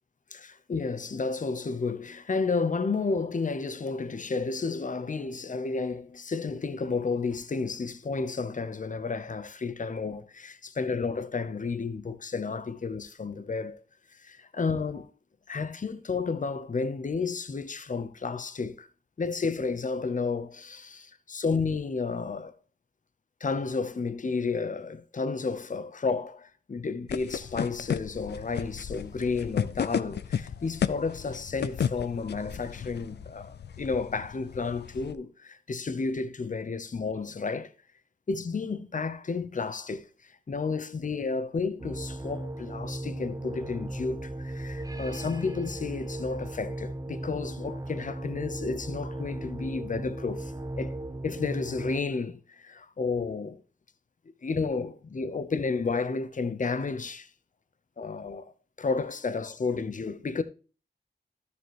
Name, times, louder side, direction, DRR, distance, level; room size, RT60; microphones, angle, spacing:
voice 1, 0.3-13.8 14.1-15.1 15.5-18.9 19.2-22.5 23.4-37.7 38.3-51.0 51.2-53.6 54.4-57.3 58.0-58.5 58.8-60.4, left 4 dB, 50° left, 0.8 m, -32 dB
sound 1, 27.1-35.1, left 8 dB, 90° left, 0.4 m, -34 dB
sound 2, 41.8-52.0, right 1 dB, 20° right, 0.7 m, -37 dB
12.5 x 6.9 x 3.0 m
wide cardioid pair, 70°, 17 cm